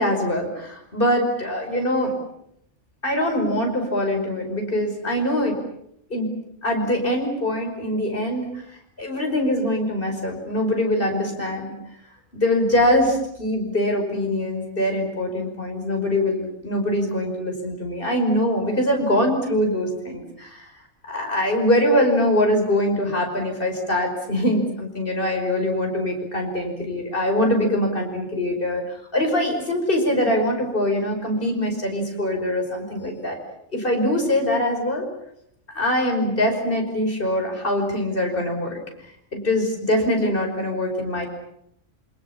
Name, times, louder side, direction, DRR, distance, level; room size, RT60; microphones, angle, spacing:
voice 1, 0.0-2.2 3.0-5.6 6.1-6.3 6.6-8.6 9.0-11.7 12.3-20.7 21.1-33.4 33.7-35.1 35.7-38.8 39.3-41.3, left 1 dB, 45° left, 2 dB, 5.7 m, -23 dB
27.5 x 26.0 x 7.3 m, 0.75 s
omnidirectional pair, 1.3 m